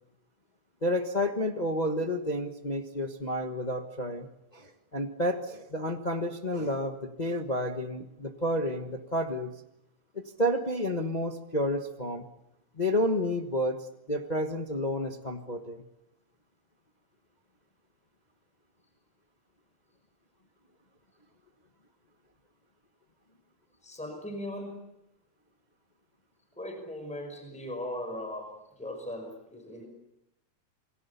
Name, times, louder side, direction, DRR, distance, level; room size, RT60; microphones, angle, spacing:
voice 1, 0.8-4.3 4.5-9.5 10.1-12.3 12.8-15.8, equal, 60° left, 5 dB, 0.4 m, -30 dB
voice 2, 23.8-24.8 26.6-29.9, left 1 dB, ahead, 4 dB, 5.3 m, -38 dB
29.0 x 22.0 x 6.9 m, 0.83 s
omnidirectional pair, 3.4 m